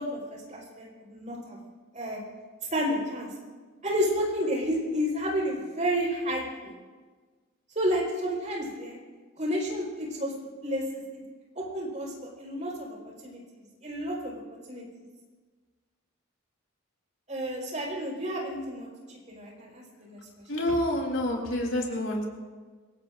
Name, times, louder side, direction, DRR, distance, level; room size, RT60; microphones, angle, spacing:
voice 1, 0.0-1.6 1.9-2.2 2.7-3.3 3.8-6.7 7.7-9.0 9.4-9.8 10.1-10.3 10.6-11.2 11.5-13.0 13.2-13.4 13.8-14.8 17.3-20.2, equal, 35° right, -2 dB, 4.7 m, -31 dB
voice 2, 20.5-22.3, left 1 dB, 70° left, 0 dB, 3.7 m, -28 dB
27.0 x 17.0 x 2.6 m, 1.4 s
head